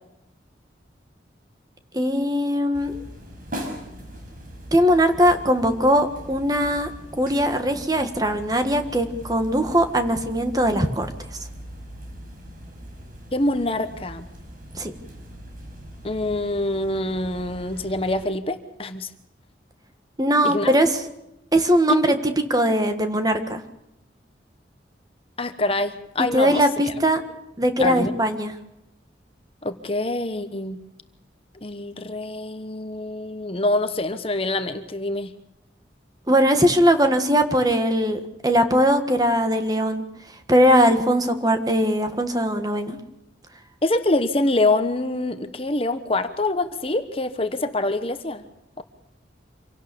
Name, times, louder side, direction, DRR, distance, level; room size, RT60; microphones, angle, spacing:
voice 1, 1.9-3.0 4.7-6.9 7.2-11.1 14.7-14.9 20.2-21.0 21.5-22.2 22.5-23.6 26.3-27.2 27.6-28.5 36.3-40.0 40.5-43.0, equal, 20° right, 7 dB, 1.6 m, -20 dB
sound 1, 2.7-18.3, equal, 50° right, 5.5 m, -40 dB
voice 2, 13.3-14.3 16.0-19.1 20.4-20.7 25.4-26.9 27.8-28.1 29.6-30.8 31.6-35.3 43.8-48.4 48.8-48.9, left 2 dB, 30° left, 9 dB, 1.1 m, -25 dB
26.5 x 17.5 x 7.0 m, 0.89 s
head